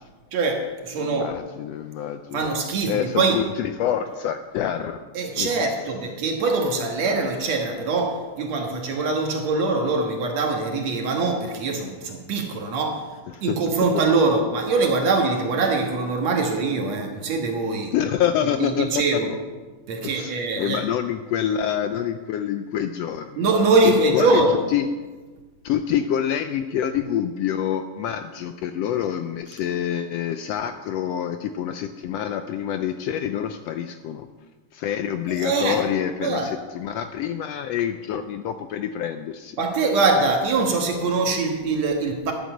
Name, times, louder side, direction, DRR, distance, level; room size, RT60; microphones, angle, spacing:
voice 1, 0.3-1.3 2.3-3.4 5.1-17.9 18.6-19.3 19.9-20.8 23.4-24.6 35.3-35.8 36.2-36.5 39.6-42.3, right 3 dB, 65° right, 3 dB, 2.6 m, -23 dB
voice 2, 1.0-2.5 2.9-5.0 5.4-5.5 13.3-13.6 17.9-19.0 20.0-23.5 23.8-24.4 24.7-24.9 25.6-34.3 34.7-39.6, left 9 dB, 90° left, 8 dB, 1.4 m, -26 dB
11.5 x 8.3 x 7.7 m, 1.3 s
omnidirectional pair, 3.4 m